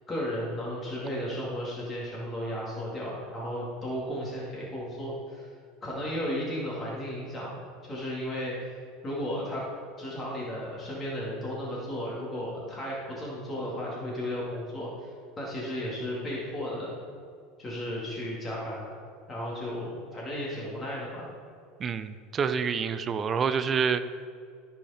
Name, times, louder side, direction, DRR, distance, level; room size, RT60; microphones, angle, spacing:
voice 1, 0.1-5.5 5.8-8.5 9.0-9.7 10.0-15.1 15.4-17.0 17.6-19.0 19.3-21.3, equal, 20° left, -6 dB, 2.3 m, -34 dB
voice 2, 21.8-24.0, right 6 dB, 30° right, 11 dB, 0.5 m, -27 dB
14.5 x 4.9 x 4.3 m, 2.3 s
supercardioid pair, 125°, 0 cm